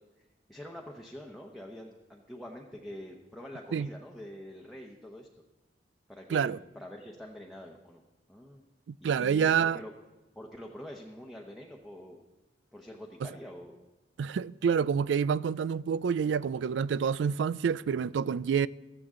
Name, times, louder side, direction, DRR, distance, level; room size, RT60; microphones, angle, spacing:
voice 1, 0.2-5.3 6.1-8.0 8.3-8.6 9.0-9.9 10.3-12.2 12.7-13.8, left 1 dB, ahead, 0.9 m, -45 dB
voice 2, 8.9-9.8 14.2-18.7, right 7 dB, 90° right, 0.3 m, -28 dB
15.5 x 13.5 x 3.7 m
head